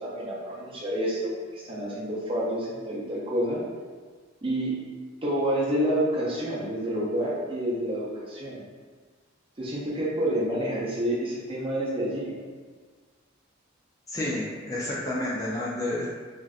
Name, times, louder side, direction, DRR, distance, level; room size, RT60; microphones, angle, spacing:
voice 1, 0.0-3.6 4.4-4.8 5.2-8.6 9.6-12.3, equal, 25° right, -6 dB, 0.6 m, -28 dB
voice 2, 14.1-16.1, left 1 dB, 15° left, -6 dB, 0.3 m, -30 dB
3.4 x 2.6 x 2.3 m, 1.5 s
head